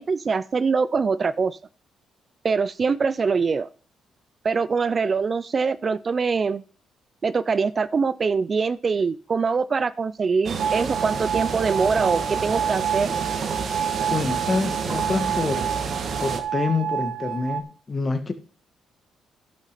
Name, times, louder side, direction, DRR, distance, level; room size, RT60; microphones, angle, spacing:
voice 1, 0.0-1.6 2.4-3.7 4.4-6.6 7.2-13.2, right 5 dB, 40° right, 0.4 m, -23 dB
sound 1, 10.4-16.4, right 5 dB, 55° right, 1.6 m, -30 dB
sound 2, 10.6-17.6, right 8 dB, 75° right, 1.1 m, -28 dB
voice 2, 14.1-15.7 16.2-18.3, left 4 dB, 30° left, 1.6 m, -26 dB
11.5 x 6.1 x 5.8 m
cardioid pair, 90°, 0 cm